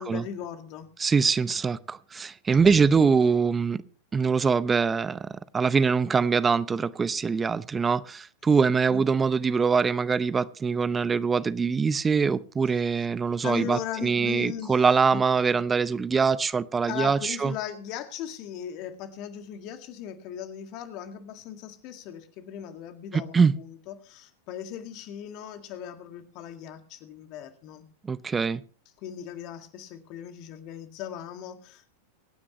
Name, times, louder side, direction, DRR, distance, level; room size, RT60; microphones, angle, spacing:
voice 1, 0.0-0.9 2.8-2.9 8.9-9.0 13.4-14.8 15.1-15.2 16.9-27.8 29.0-32.0, left 9 dB, 45° left, 2.0 m, -38 dB
voice 2, 1.0-3.8 4.1-17.5 23.1-23.5 28.0-28.6, right 5 dB, 20° right, 0.7 m, -23 dB
24.5 x 9.7 x 3.1 m
figure-of-eight pair, 90°, 0 cm